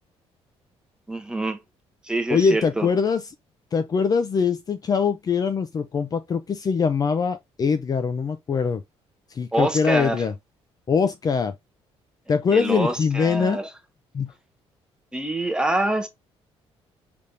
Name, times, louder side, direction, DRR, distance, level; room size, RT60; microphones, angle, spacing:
voice 1, 1.1-1.6 2.0-2.9 9.5-10.2 12.5-13.7 15.1-16.1, right 1 dB, 5° right, 0.9 m, -25 dB
voice 2, 2.3-3.2 3.7-8.8 9.4-10.3 10.9-11.5 12.3-13.6 14.1-14.3, left 5 dB, 35° left, 0.5 m, -22 dB
5.0 x 3.4 x 2.7 m
cardioid pair, 125°, 11 cm